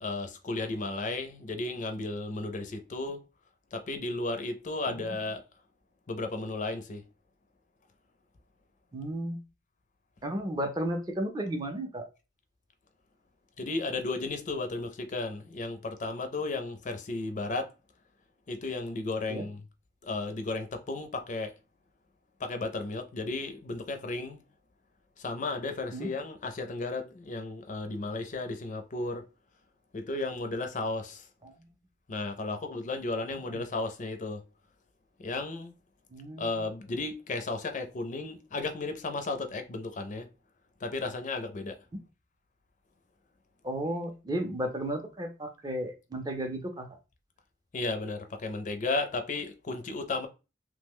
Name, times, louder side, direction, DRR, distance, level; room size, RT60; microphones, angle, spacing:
voice 1, 0.0-3.2 3.7-5.4 6.1-7.0 13.6-17.7 18.5-19.6 20.0-21.5 22.4-24.4 25.2-29.3 29.9-31.3 32.1-34.4 35.2-35.7 36.4-40.3 40.8-41.8 47.7-50.3, left 3 dB, 45° left, 0.4 m, -34 dB
voice 2, 8.9-9.4 10.2-12.0 19.3-19.4 25.9-26.1 31.4-31.5 33.3-33.6 36.1-36.5 43.6-46.9, right 1 dB, 20° right, 0.4 m, -34 dB
3.0 x 2.1 x 3.5 m
head